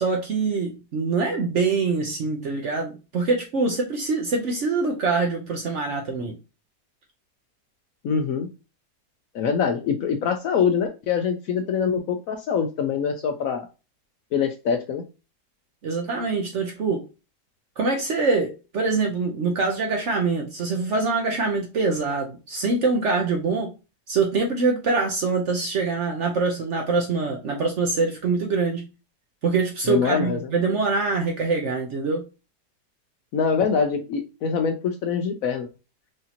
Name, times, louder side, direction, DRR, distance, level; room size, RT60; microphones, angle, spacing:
voice 1, 0.0-6.4 15.8-17.0 17.8-23.7 24.1-28.8 29.4-32.2, right 4 dB, 60° right, 0.8 m, -24 dB
voice 2, 8.0-8.5 9.3-13.6 14.3-15.0 29.9-30.4 33.3-35.7, left 6 dB, 70° left, 0.8 m, -24 dB
4.9 x 2.7 x 2.8 m
omnidirectional pair, 1.8 m